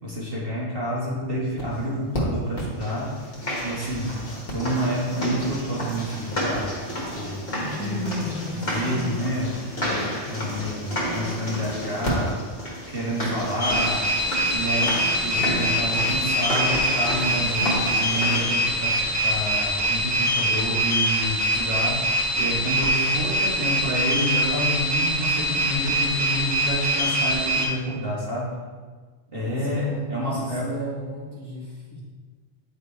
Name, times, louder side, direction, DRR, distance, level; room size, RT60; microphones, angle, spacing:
voice 1, 0.0-3.3 3.6-4.2 4.5-6.8 7.1-8.0 8.5-12.4 12.9-14.1 14.5-28.5 29.3-30.8, equal, 50° right, -6 dB, 1.6 m, -29 dB
sound 1, 1.6-1.7 2.1-2.2 2.6-18.4, equal, 50° left, 1.7 m, -31 dB
voice 2, 7.6-9.1 9.7-9.8 10.4-10.8 29.8-32.0, equal, 5° left, -8 dB, 1.8 m, -34 dB
sound 2, 13.6-27.7, equal, 15° right, 1.2 m, -24 dB
9.5 x 3.6 x 4.4 m, 1.5 s
omnidirectional pair, 1.3 m